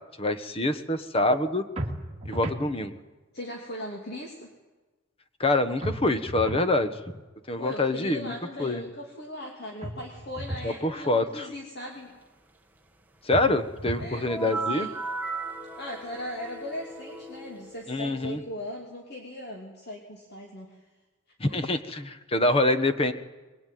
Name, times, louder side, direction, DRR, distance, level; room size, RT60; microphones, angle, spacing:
voice 1, 0.2-1.6 2.3-3.0 5.4-7.0 7.5-8.3 8.6-8.8 10.6-11.5 13.2-14.9 17.9-18.4 21.4-23.1, left 2 dB, 25° left, 10 dB, 1.2 m, -25 dB
sound 1, 1.8-2.7 5.8-6.7 9.8-10.7 13.3-14.2, right 1 dB, 30° right, 2.3 m, -34 dB
voice 2, 3.3-4.5 7.6-12.1 14.0-14.9 15.8-20.8 21.5-21.6, left 1 dB, 50° left, 0 dB, 2.9 m, -39 dB
sound 2, 14.3-17.9, right 3 dB, 10° right, 1.4 m, -36 dB
22.5 x 21.0 x 9.3 m, 1.2 s
head